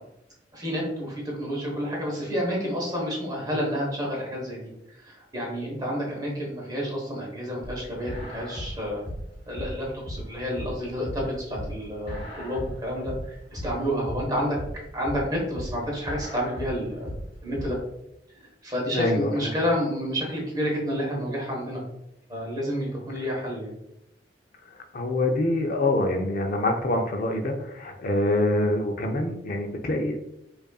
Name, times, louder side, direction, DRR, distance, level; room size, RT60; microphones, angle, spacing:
voice 1, 0.5-4.6 5.0-9.0 9.5-14.6 14.9-17.1 17.4-17.8 18.6-21.8 22.3-23.7, equal, 25° right, -3 dB, 1.1 m, -29 dB
sound 1, 7.6-17.7, equal, 35° left, 1.4 m, -36 dB
voice 2, 18.9-19.5 24.7-30.2, left 1 dB, 50° left, 4 dB, 0.5 m, -25 dB
5.1 x 2.5 x 2.3 m, 0.84 s
head